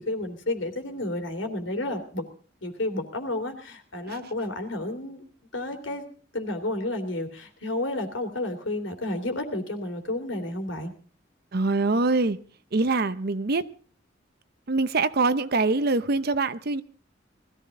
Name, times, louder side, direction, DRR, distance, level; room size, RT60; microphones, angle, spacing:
voice 1, 0.0-2.2 2.6-5.2 5.5-6.0 6.3-10.9, left 1 dB, 70° left, 3.0 m, -31 dB
voice 2, 11.5-12.4 12.7-13.6 14.7-16.8, right 3 dB, 55° right, 0.8 m, -24 dB
20.0 x 14.5 x 3.7 m
head